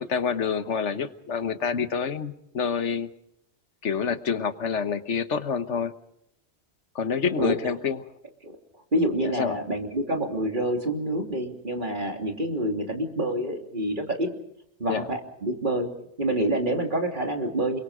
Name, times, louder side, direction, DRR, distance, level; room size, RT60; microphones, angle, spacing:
voice 1, 0.0-3.1 3.8-5.9 6.9-8.0 9.2-9.6 14.9-15.0, left 6 dB, 85° left, 11 dB, 1.5 m, -27 dB
voice 2, 7.4-7.7 8.4-8.6 8.9-14.3 14.8-15.9 16.2-17.8, right 1 dB, 45° right, 3 dB, 3.2 m, -27 dB
29.0 x 22.5 x 5.0 m, 0.77 s
omnidirectional pair, 1.2 m